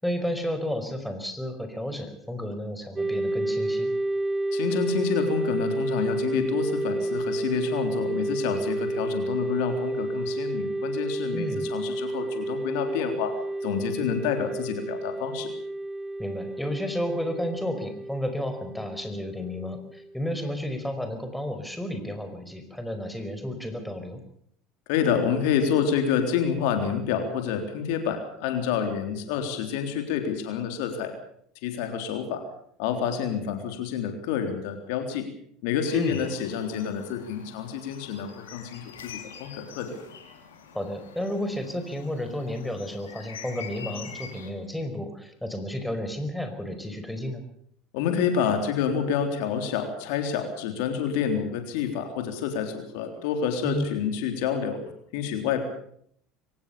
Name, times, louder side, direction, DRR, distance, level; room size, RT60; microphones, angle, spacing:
voice 1, 0.0-3.9 11.3-11.6 16.2-24.2 35.9-36.2 40.7-47.4 53.6-53.8, equal, 5° left, 7 dB, 5.0 m, -32 dB
sound 1, 3.0-20.3, right 1 dB, 15° right, 1.4 m, -30 dB
voice 2, 4.5-15.5 24.9-31.2 31.6-32.4 32.8-35.3 35.6-40.0 47.9-54.8 55.1-55.6, left 7 dB, 70° left, 6 dB, 3.7 m, -28 dB
sound 2, 35.8-44.5, left 7 dB, 85° left, 3.8 m, -45 dB
23.0 x 18.5 x 7.0 m, 0.66 s
hypercardioid pair, 75°, 0 cm